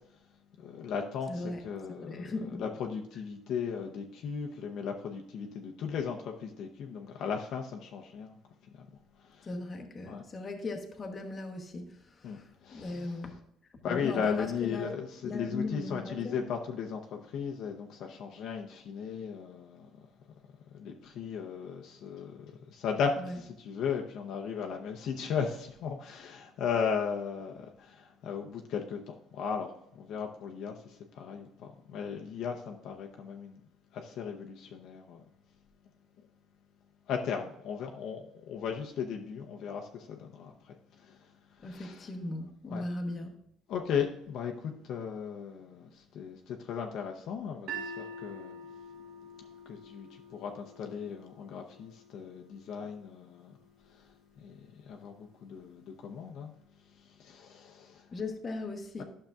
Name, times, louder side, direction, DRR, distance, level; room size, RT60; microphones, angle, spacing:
voice 1, 0.6-8.4 8.7-8.9 9.2-9.6 10.1-10.2 12.2-13.4 13.8-20.1 20.7-33.6 33.9-35.2 37.1-41.3 41.5-42.1 42.7-42.9 43.7-48.6 49.4-53.5 53.9-56.5 56.9-58.1 59.0-59.1, left 6 dB, 55° left, 2 dB, 0.7 m, -37 dB
voice 2, 1.3-1.6 2.1-2.6 9.5-12.0 12.2-12.4 12.7-13.4 13.9-15.0 15.2-16.5 23.2-23.3 41.6-43.3 58.1-59.0, left 2 dB, 25° left, 3 dB, 1.0 m, -38 dB
sound 1, 47.7-53.8, right 2 dB, 60° right, 1.0 m, -46 dB
11.5 x 6.5 x 2.4 m, 0.76 s
cardioid pair, 155°, 0 cm